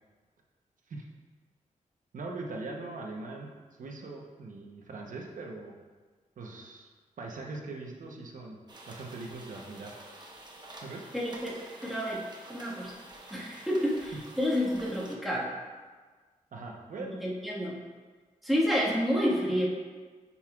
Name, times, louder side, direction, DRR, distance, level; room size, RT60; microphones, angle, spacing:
voice 1, 2.1-3.5 3.8-5.7 6.4-6.9 7.2-8.6 8.9-10.0 10.8-11.0 16.5-17.2, right 3 dB, 75° right, 1 dB, 0.9 m, -41 dB
sound 1, 8.7-15.1, right 1 dB, 30° right, 1.0 m, -49 dB
voice 2, 11.1-11.6 11.8-12.2 12.5-13.0 13.3-15.5 17.0-17.8 18.4-19.6, equal, ahead, -6 dB, 1.6 m, -29 dB
8.9 x 5.6 x 2.4 m, 1.4 s
wide cardioid pair, 115°, 14 cm